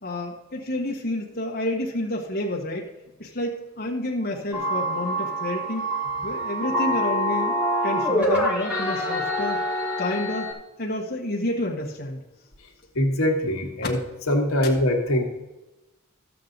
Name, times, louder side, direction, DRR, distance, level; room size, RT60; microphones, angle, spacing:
voice 1, 0.0-2.9 3.2-5.8 6.2-7.6 7.8-9.6 10.0-12.2, left 1 dB, 45° left, -1 dB, 1.5 m, -29 dB
sound 1, 4.5-10.5, equal, 5° right, 2.0 m, -25 dB
voice 2, 12.9-14.0 14.3-15.2, left 1 dB, 85° left, 1 dB, 1.7 m, -22 dB
13.0 x 7.6 x 3.9 m, 1.0 s
head